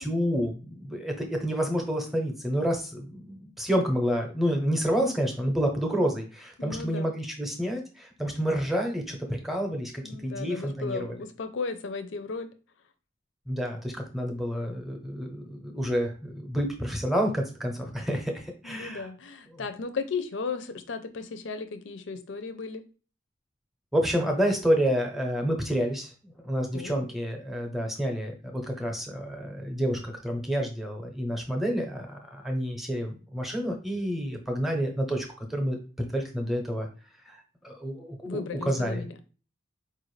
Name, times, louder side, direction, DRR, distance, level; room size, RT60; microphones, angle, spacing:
voice 1, 0.0-11.1 13.5-19.1 19.5-19.6 23.9-36.9 37.3-37.4 37.6-38.4 38.7-39.0, equal, ahead, 2 dB, 0.7 m, -29 dB
voice 2, 6.6-7.1 8.4-8.5 10.0-12.5 18.6-22.8 26.7-27.1 38.2-39.2, left 4 dB, 75° left, 9 dB, 0.5 m, -35 dB
4.5 x 2.5 x 3.1 m, 0.36 s
head